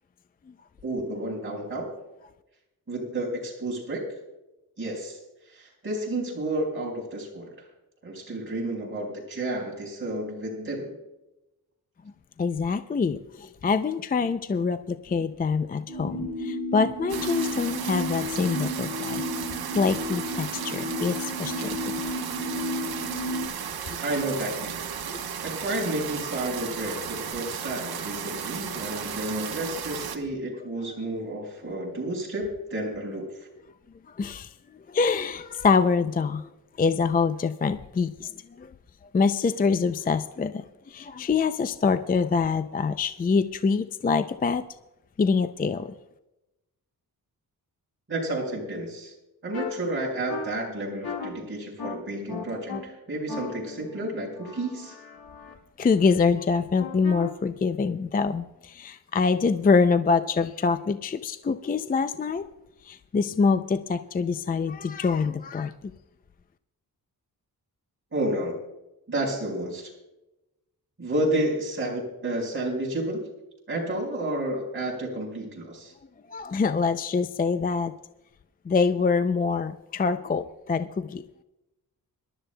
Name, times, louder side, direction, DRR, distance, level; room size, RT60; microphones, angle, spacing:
voice 1, 0.8-1.9 2.9-4.0 4.8-5.2 5.5-7.5 8.0-11.0 24.0-24.8 25.4-33.3 48.1-49.1 49.4-55.0 68.1-68.5 69.1-69.9 71.0-73.2 73.7-75.9, right 1 dB, 35° right, -2 dB, 4.7 m, -31 dB
voice 2, 12.4-19.2 19.7-21.8 22.6-22.7 23.9-24.0 25.1-25.2 34.2-34.5 34.9-36.5 36.8-38.7 39.1-44.6 45.2-45.9 55.8-62.5 62.8-65.7 76.3-77.9 78.7-81.2, left 5 dB, 25° left, 10 dB, 0.4 m, -25 dB
sound 1, 15.9-23.5, left 1 dB, ahead, 3.5 m, -32 dB
sound 2, 17.1-30.2, right 8 dB, 85° right, 1.0 m, -35 dB
sound 3, 49.5-49.7 50.3-50.4 51.0-51.3 51.8-51.9 52.3-52.8 53.3-55.5 56.8-57.3, left 5 dB, 75° left, 1.9 m, -36 dB
25.5 x 12.0 x 2.2 m, 0.97 s
wide cardioid pair, 125°, 36 cm